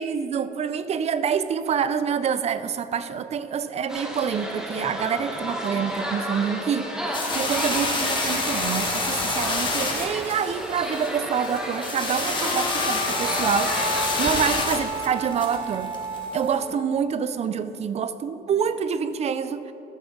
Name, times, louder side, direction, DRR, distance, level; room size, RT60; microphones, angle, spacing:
voice 1, 0.0-13.7 14.2-15.9 16.3-19.7, right 7 dB, 40° right, 13 dB, 0.5 m, -27 dB
sound 1, 3.9-14.5, equal, 5° right, 1.1 m, -32 dB
sound 2, 7.1-16.6, left 3 dB, 30° left, 1.7 m, -28 dB
sound 3, 11.7-17.2, equal, 75° left, 2.2 m, -32 dB
13.0 x 6.9 x 3.8 m, 2.8 s
cardioid pair, 110°, 17 cm